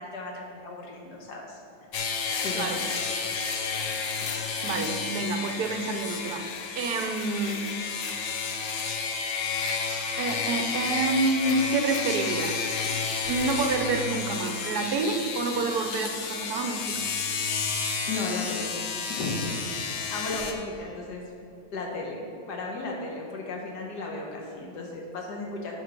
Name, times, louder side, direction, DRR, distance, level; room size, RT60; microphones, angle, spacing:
voice 1, 0.0-1.6 2.0-2.7 4.2-4.3 18.1-18.7 19.1-19.4 19.8-21.2 21.7-22.2 22.5-25.8, left 3 dB, 80° left, -1 dB, 1.6 m, -35 dB
sound 1, 1.9-20.5, left 5 dB, 60° left, 0.6 m, -31 dB
voice 2, 4.6-6.5 6.7-7.7 10.2-12.6 13.3-17.0, right 3 dB, 70° right, 5 dB, 1.2 m, -28 dB
9.1 x 4.4 x 5.9 m, 2.7 s
omnidirectional pair, 1.8 m